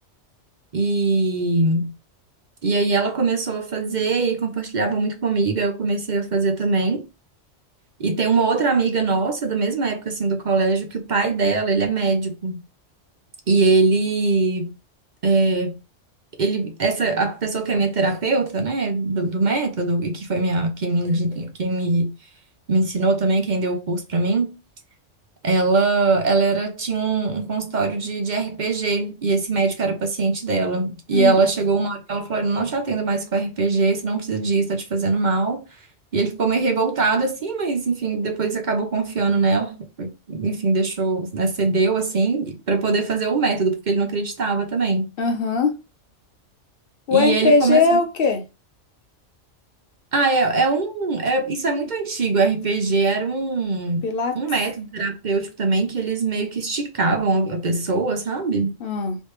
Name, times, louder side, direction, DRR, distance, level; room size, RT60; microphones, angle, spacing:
voice 1, 0.7-1.9 2.6-7.0 8.0-12.6 13.5-14.7 15.2-15.8 16.4-22.1 22.7-24.5 25.4-35.6 36.1-45.1 47.1-48.0 50.1-54.0 54.3-58.7, right 3 dB, 45° right, 0.7 m, -22 dB
voice 2, 45.2-45.7 47.1-48.4 54.0-54.4 58.8-59.2, left 4 dB, 60° left, 0.7 m, -19 dB
3.1 x 3.1 x 3.1 m
omnidirectional pair, 1.2 m